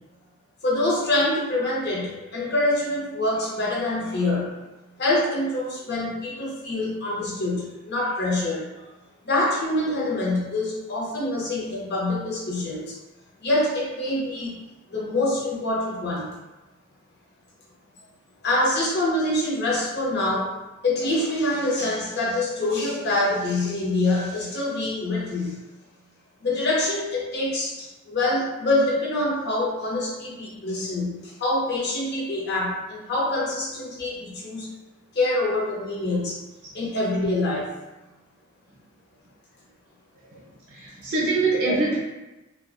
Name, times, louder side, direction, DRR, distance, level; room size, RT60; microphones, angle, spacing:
voice 1, 0.6-4.6 5.0-8.8 9.2-13.0 13.4-14.6 14.9-16.3 18.4-20.5 20.8-25.6 26.4-34.7 35.1-36.4 36.7-37.7 41.7-41.8, left 2 dB, 55° left, -4 dB, 0.7 m, -25 dB
voice 2, 40.7-42.0, right 3 dB, 55° right, -6 dB, 0.6 m, -24 dB
2.4 x 2.1 x 2.5 m, 1.0 s
head